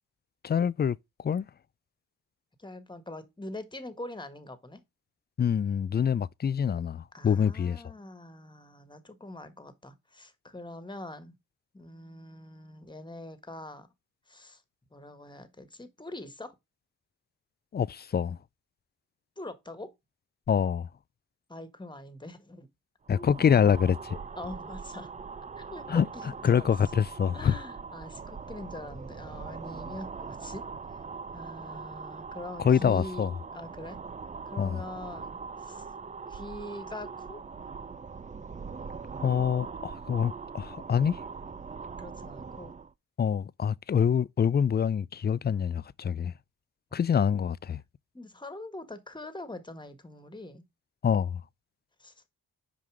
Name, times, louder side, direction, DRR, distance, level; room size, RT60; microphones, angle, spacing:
voice 1, 0.4-1.0 1.2-1.5 5.4-7.8 17.7-18.4 20.5-20.9 23.1-24.2 25.9-26.1 26.4-27.5 32.6-33.3 34.6-34.8 39.2-41.2 43.2-46.3 46.9-47.8 51.0-51.4, left 7 dB, 30° left, 0.4 m, -25 dB
voice 2, 2.6-4.8 7.1-11.3 11.7-13.9 14.3-14.6 14.9-16.5 19.4-19.9 21.5-22.7 23.1-23.8 24.4-25.1 25.6-26.7 27.3-30.7 31.3-34.0 34.5-35.9 36.3-37.4 42.0-42.8 48.1-50.6 52.0-52.1, left 1 dB, 15° left, 1.7 m, -43 dB
sound 1, 23.1-42.9, right 5 dB, 20° right, 0.5 m, -42 dB
5.7 x 5.0 x 4.9 m
supercardioid pair, 55°, 35 cm